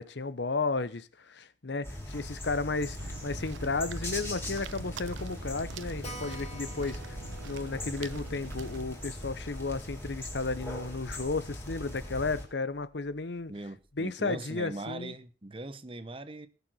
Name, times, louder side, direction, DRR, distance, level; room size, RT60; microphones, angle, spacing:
voice 1, 0.0-7.2 7.4-13.5 14.0-15.1, left 3 dB, 65° left, 0.9 m, -33 dB
sound 1, 1.8-12.5, left 1 dB, 10° left, 3.6 m, -40 dB
sound 2, 3.0-8.8, right 4 dB, 80° right, 0.9 m, -45 dB
Keyboard (musical), 6.0-11.1 11.4-11.5 11.7-11.8 12.1-12.2 12.8-13.1, right 1 dB, 35° left, 4.1 m, -50 dB
voice 2, 13.5-16.5, right 2 dB, 25° right, 0.9 m, -40 dB
18.5 x 6.9 x 6.2 m
head